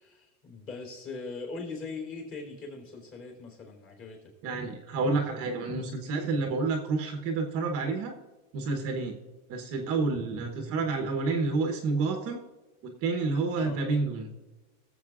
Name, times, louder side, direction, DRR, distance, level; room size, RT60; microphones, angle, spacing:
voice 1, 0.0-4.2 13.5-13.8, left 4 dB, 30° left, 1 dB, 3.4 m, -40 dB
voice 2, 4.4-8.1 8.5-9.1 9.5-12.4 12.8-14.3, right 3 dB, 30° right, 4 dB, 1.1 m, -29 dB
18.5 x 7.5 x 2.4 m, 1.2 s
supercardioid pair, 150°, 45 cm